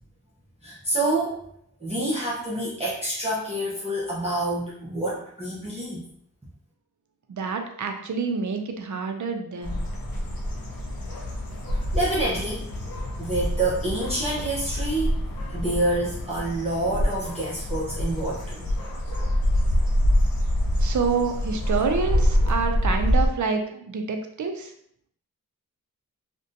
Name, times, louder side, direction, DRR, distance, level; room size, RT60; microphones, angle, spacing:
voice 1, 0.6-1.4 1.8-6.1 11.9-12.7 13.2-15.2 15.5-18.7, right 1 dB, 20° right, -8 dB, 0.7 m, -27 dB
voice 2, 7.3-9.8 20.8-24.7, right 5 dB, 60° right, 5 dB, 0.5 m, -27 dB
sound 1, 9.6-23.3, equal, 85° left, 0.6 m, -26 dB
2.5 x 2.1 x 2.5 m, 0.66 s
wide cardioid pair, 50°, 34 cm